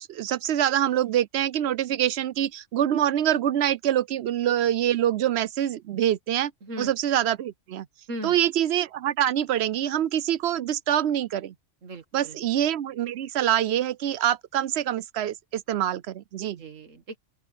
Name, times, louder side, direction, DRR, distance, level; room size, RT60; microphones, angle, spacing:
voice 1, 0.0-6.5 6.8-7.9 8.2-11.5 12.1-16.6, right 11 dB, 65° right, 0.8 m, -25 dB
voice 2, 6.6-6.9 8.1-8.4 11.8-12.4 16.6-17.2, right 1 dB, 85° right, 2.1 m, -38 dB
open air
omnidirectional pair, 1.3 m